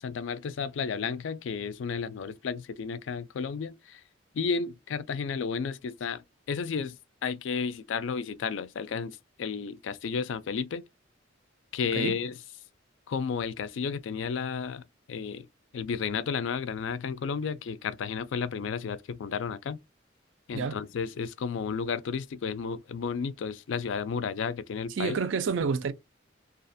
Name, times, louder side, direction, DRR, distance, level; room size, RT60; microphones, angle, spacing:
voice 1, 0.0-4.0 4.3-7.0 7.2-10.8 11.7-12.3 13.1-14.8 15.1-15.5 15.7-19.8 20.5-25.2, left 6 dB, 75° left, 0.4 m, -32 dB
voice 2, 25.0-25.9, right 5 dB, 75° right, 0.4 m, -29 dB
2.4 x 2.4 x 2.5 m
head